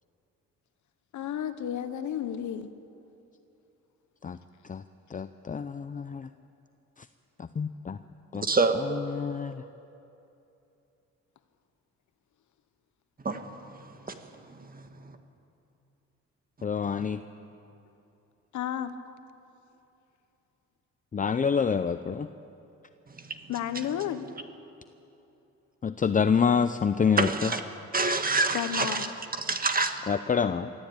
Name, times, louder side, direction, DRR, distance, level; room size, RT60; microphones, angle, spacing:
voice 1, 1.1-2.7 18.5-19.0 23.5-24.3 28.5-29.1, left 10 dB, 75° left, 11 dB, 1.2 m, -32 dB
voice 2, 5.1-6.3 7.4-8.0 8.3-8.4 9.1-9.6 16.6-17.2 21.1-22.3 25.8-27.5 30.1-30.7, left 6 dB, 25° left, 11 dB, 0.6 m, -27 dB
voice 3, 8.3-8.7 13.3-13.4 14.1-14.2 14.7-15.2 27.2-27.6 27.9-29.1 29.4-30.0, right 3 dB, 30° right, 7 dB, 1.9 m, -26 dB
23.5 x 14.5 x 9.0 m, 2.8 s
cardioid pair, 90°, 30 cm